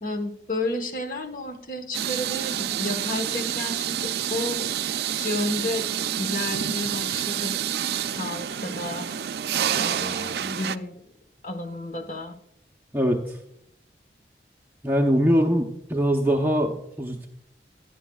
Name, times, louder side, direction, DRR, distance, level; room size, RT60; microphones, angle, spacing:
voice 1, 0.0-4.7 5.1-5.9 6.2-7.5 8.1-9.1 9.7-11.0 11.4-12.4, left 2 dB, 50° left, 6 dB, 1.2 m, -31 dB
sound 1, 1.9-10.8, right 10 dB, 60° right, 0.4 m, -28 dB
voice 2, 12.9-13.4 14.8-17.3, equal, 10° right, 1 dB, 0.7 m, -22 dB
15.5 x 11.0 x 2.3 m, 0.74 s
head